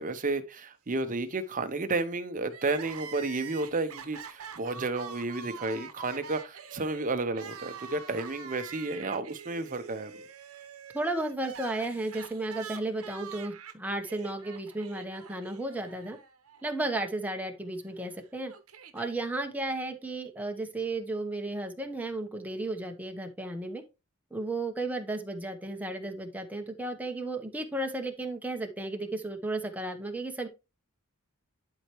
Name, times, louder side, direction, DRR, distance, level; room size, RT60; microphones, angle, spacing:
voice 1, 0.0-10.2, right 3 dB, 35° right, 0.8 m, -32 dB
Crying sobbing, 2.5-16.6 16.9-17.0 18.0-19.1, right 6 dB, 70° right, 0.9 m, -45 dB
voice 2, 10.9-16.2 16.6-18.5 18.9-23.8 24.3-30.5, right 2 dB, 5° right, 1.0 m, -34 dB
11.0 x 4.5 x 3.1 m
head